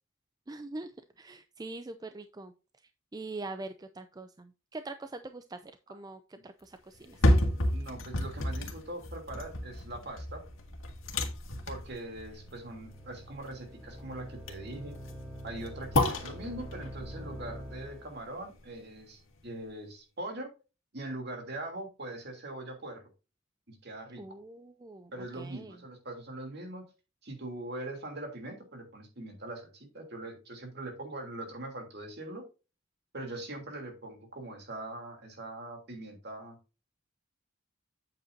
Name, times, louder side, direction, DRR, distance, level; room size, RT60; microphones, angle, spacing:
voice 1, 0.5-0.9 1.2-2.5 3.1-7.2 24.2-25.7, right 2 dB, 20° right, 9 dB, 0.4 m, -43 dB
sound 1, 6.9-19.0 19.4-19.5, left 1 dB, 75° left, 1.9 m, -32 dB
voice 2, 7.7-10.4 11.7-14.9 15.4-20.5 20.9-23.0 23.7-24.4 25.1-26.8 27.2-32.4 33.1-36.6, right 1 dB, 55° right, 3 dB, 3.0 m, -42 dB
sound 2, 11.4-18.2, equal, 5° right, 3.3 m, -46 dB
8.8 x 8.0 x 2.7 m, 0.31 s
head